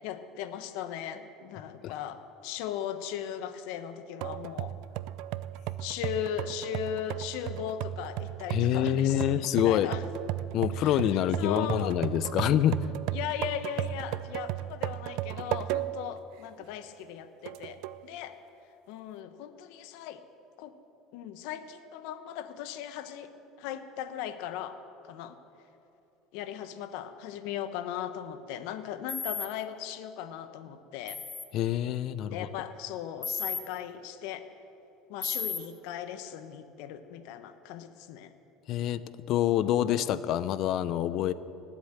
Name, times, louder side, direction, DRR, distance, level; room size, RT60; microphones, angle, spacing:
voice 1, 0.0-4.7 5.8-10.0 10.7-11.9 13.1-18.4 18.9-20.2 20.6-20.7 21.1-23.3 23.6-25.4 26.3-31.2 32.2-34.5 35.1-38.3, left 10 dB, 75° left, 10 dB, 1.1 m, -38 dB
sound 1, 4.2-16.1 16.6-16.7 17.5-18.0, right 14 dB, 70° right, 0.5 m, -35 dB
voice 2, 8.5-9.9 10.5-12.8 31.5-32.5 38.7-39.0 39.3-41.3, left 11 dB, 55° left, 15 dB, 0.6 m, -26 dB
sound 2, 29.1-29.5 31.1-31.5 33.2-33.6 35.2-35.6, left 4 dB, 20° left, 1.3 m, -33 dB
19.0 x 8.2 x 8.9 m, 2.9 s
supercardioid pair, 115°, 0 cm